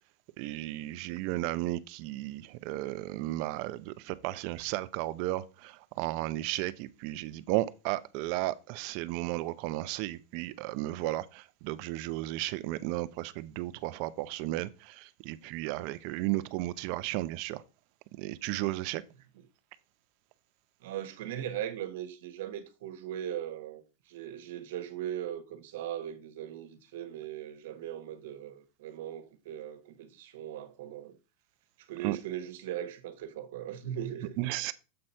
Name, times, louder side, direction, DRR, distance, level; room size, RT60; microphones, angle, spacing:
voice 1, 0.4-17.6 18.2-19.0 32.0-32.2 34.4-34.7, right 17 dB, 55° right, 0.6 m, -34 dB
voice 2, 20.8-31.2 31.8-34.4, right 11 dB, 75° right, 1.3 m, -39 dB
7.7 x 4.1 x 4.4 m
supercardioid pair, 140°, 0 cm